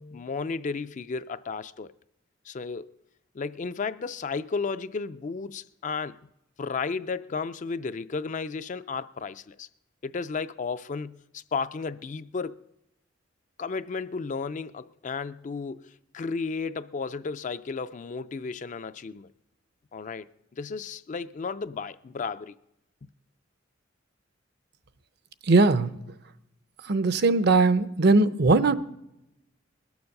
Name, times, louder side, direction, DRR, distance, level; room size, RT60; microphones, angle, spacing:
voice 1, 0.0-1.9 2.4-2.9 3.3-6.2 6.6-9.7 10.0-12.6 13.6-19.3 19.9-22.5, left 4 dB, 40° left, 0.4 m, -33 dB
voice 2, 25.4-25.9 26.8-28.8, right 3 dB, 55° right, 0.6 m, -20 dB
21.0 x 7.0 x 6.5 m
head